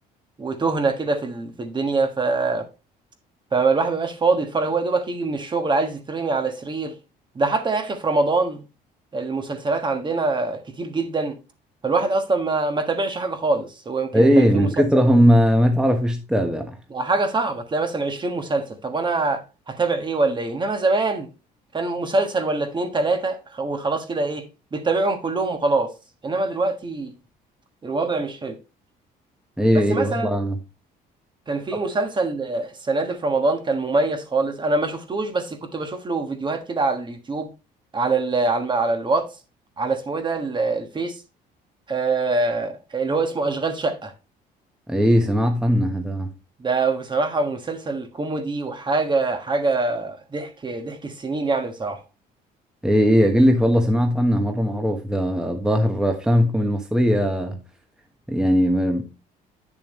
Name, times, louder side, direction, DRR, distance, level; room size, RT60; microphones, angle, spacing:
voice 1, 0.4-2.7 3.5-6.9 7.3-8.6 9.1-11.4 11.8-14.9 16.9-19.4 19.7-21.3 21.7-24.5 24.7-25.9 26.2-27.1 27.8-28.6 29.7-30.3 31.5-37.5 37.9-39.3 39.8-41.2 41.9-44.1 46.6-52.0, right 3 dB, 25° right, 1.5 m, -24 dB
voice 2, 14.1-16.8 29.6-30.6 44.9-46.3 52.8-57.6 58.3-59.0, equal, 5° right, 1.2 m, -19 dB
8.7 x 7.0 x 3.1 m
cardioid pair, 110°, 17 cm